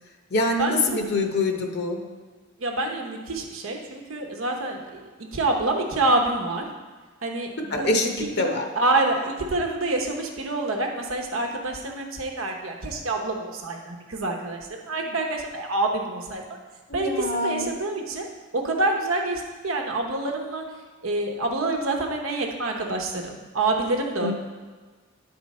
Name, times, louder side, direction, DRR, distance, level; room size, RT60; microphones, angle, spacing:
voice 1, 0.3-2.0 7.7-8.7 16.9-17.7 24.2-24.3, left 2 dB, 55° left, 3 dB, 0.8 m, -25 dB
voice 2, 2.6-5.0 5.3-6.7 7.2-7.9 8.2-8.3 8.8-16.4 16.9-18.3 18.5-20.6 21.0-24.3, right 2 dB, 85° right, 3 dB, 0.9 m, -27 dB
10.0 x 4.3 x 4.2 m, 1.4 s
head